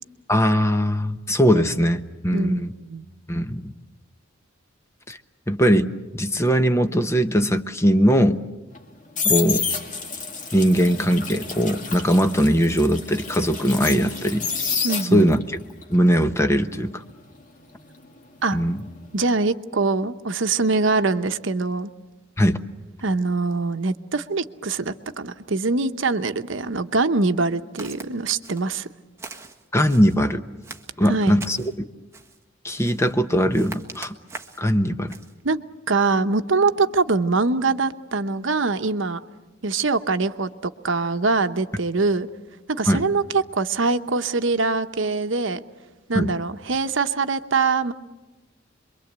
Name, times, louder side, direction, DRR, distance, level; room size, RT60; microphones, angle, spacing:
voice 1, 0.3-2.7 3.3-3.7 5.1-5.2 5.5-8.4 9.2-9.6 10.5-14.5 15.1-15.4 15.9-17.0 18.5-18.8 22.4-22.6 29.7-30.4 31.0-31.6 32.6-34.1 34.6-35.1 42.9-43.0 46.1-46.3, equal, 15° left, 8 dB, 0.9 m, -20 dB
voice 2, 2.3-3.0 14.8-15.3 18.4-18.6 19.1-21.9 23.0-28.9 31.1-31.4 35.4-39.2 39.6-42.3 42.7-45.6 46.1-47.9, right 3 dB, 70° right, 9 dB, 0.9 m, -23 dB
sound 1, 8.7-15.5 15.8-18.7 19.0-19.3, left 5 dB, 40° left, 2.4 m, -29 dB
Walk footsteps, 27.8-28.1 28.4-28.8 29.2-30.2 30.6-31.7 32.1-32.4 32.8-33.2 33.5-34.7 35.1-35.3, right 3 dB, 15° right, 1.5 m, -41 dB
27.0 x 23.0 x 8.1 m, 1.1 s
head